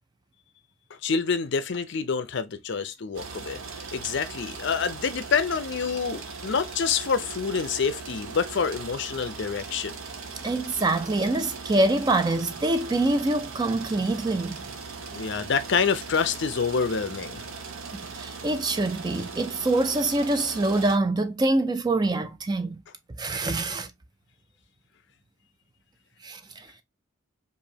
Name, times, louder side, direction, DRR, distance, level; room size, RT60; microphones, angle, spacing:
voice 1, 1.0-10.0 15.1-17.4, left 5 dB, 55° left, 0.5 m, -27 dB
sound 1, 3.1-21.0, right 5 dB, 70° right, 0.9 m, -39 dB
voice 2, 10.4-14.7 17.9-22.8 23.2-23.9 26.2-26.7, right 2 dB, 20° right, 0.3 m, -25 dB
4.9 x 2.6 x 2.7 m
head